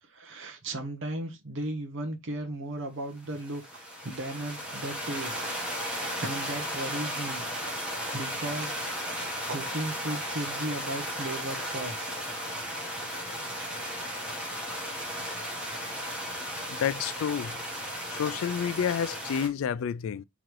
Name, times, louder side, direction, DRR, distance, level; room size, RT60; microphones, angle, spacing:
voice 1, 0.1-3.6 4.0-5.4 5.8-7.4 7.8-9.0 9.4-12.1 18.1-18.2, right 1 dB, 60° right, 0.8 m, -36 dB
sound 1, 3.2-19.5, equal, 5° right, 1.2 m, -35 dB
voice 2, 16.7-17.6 18.1-20.2, left 8 dB, 70° left, 0.3 m, -29 dB
3.7 x 3.1 x 4.4 m
head